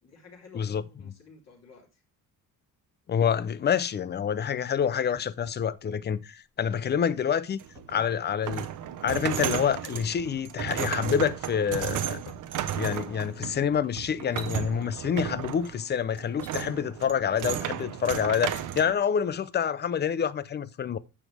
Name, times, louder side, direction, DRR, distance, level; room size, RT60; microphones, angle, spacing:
voice 1, 0.0-2.0, left 4 dB, 45° left, 3.6 m, -52 dB
voice 2, 3.1-8.7 9.0-12.2 12.7-21.0, left 8 dB, 30° left, 0.5 m, -27 dB
sound 1, 5.2-5.7 6.7-6.9 7.8-9.7 10.0-10.2 11.1-11.9 12.3-12.4 13.1-13.8, left 5 dB, 80° left, 2.4 m, -52 dB
sound 2, 7.6-18.9, right 10 dB, 60° right, 1.0 m, -34 dB
sound 3, 14.2-14.6 16.3-16.5 18.4-18.6, left 2 dB, 5° left, 1.5 m, -44 dB
9.9 x 7.2 x 3.4 m
cardioid pair, 140°, 35 cm